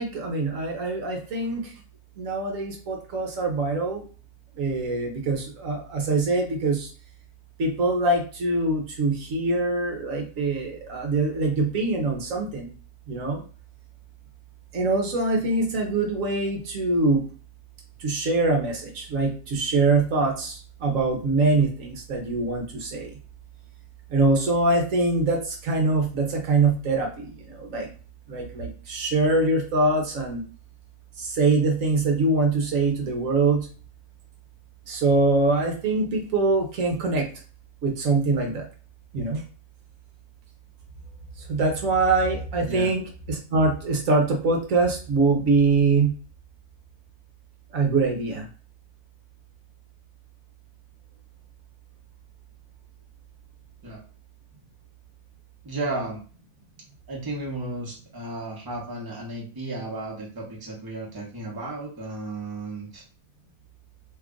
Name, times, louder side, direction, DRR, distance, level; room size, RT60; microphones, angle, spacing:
voice 1, 0.0-1.7 2.2-4.0 4.6-6.9 7.6-12.7 13.1-13.4 14.7-17.2 18.0-23.1 24.1-27.9 28.3-30.4 31.2-33.7 34.9-37.3 37.8-38.7 39.1-39.4 41.4-43.0 43.3-46.1 47.7-48.5, right 3 dB, 60° right, 1 dB, 1.0 m, -23 dB
voice 2, 42.6-42.9 53.8-54.0 55.6-56.2 57.1-63.0, right 2 dB, 20° right, -2 dB, 0.7 m, -34 dB
3.0 x 2.3 x 3.6 m, 0.37 s
omnidirectional pair, 1.7 m